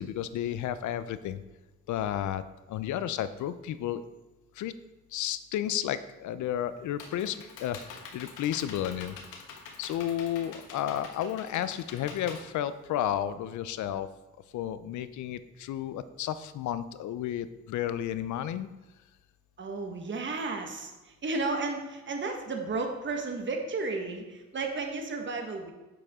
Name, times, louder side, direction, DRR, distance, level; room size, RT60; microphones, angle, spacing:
voice 1, 0.0-1.4 1.9-2.4 2.7-4.1 4.6-4.7 5.1-9.2 9.8-14.1 14.5-18.7, left 11 dB, 75° left, 14 dB, 0.6 m, -32 dB
Computer keyboard, 6.4-13.3, left 5 dB, 90° left, 1.3 m, -46 dB
voice 2, 19.6-25.7, right 3 dB, 40° right, 3 dB, 1.4 m, -33 dB
7.8 x 6.9 x 3.6 m, 1.1 s
cardioid pair, 90°, 30 cm